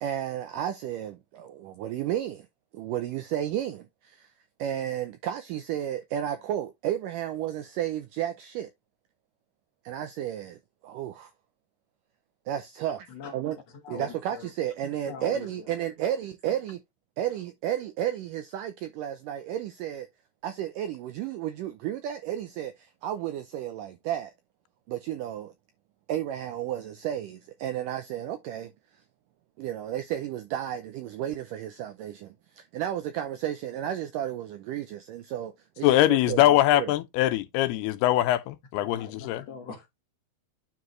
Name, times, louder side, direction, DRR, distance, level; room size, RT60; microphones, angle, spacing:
voice 1, 0.0-2.5 2.7-4.3 4.6-8.7 9.9-10.6 10.8-11.3 12.5-13.0 13.3-13.6 13.9-16.8 17.2-20.1 20.4-24.3 24.9-25.5 26.1-28.7 29.6-36.9, right 11 dB, 80° right, 1.9 m, -32 dB
voice 2, 13.8-14.5 15.1-15.7 38.9-39.9, left 5 dB, 55° left, 2.0 m, -42 dB
voice 3, 35.8-39.4, left 14 dB, 85° left, 2.7 m, -22 dB
9.5 x 4.8 x 3.1 m
omnidirectional pair, 4.5 m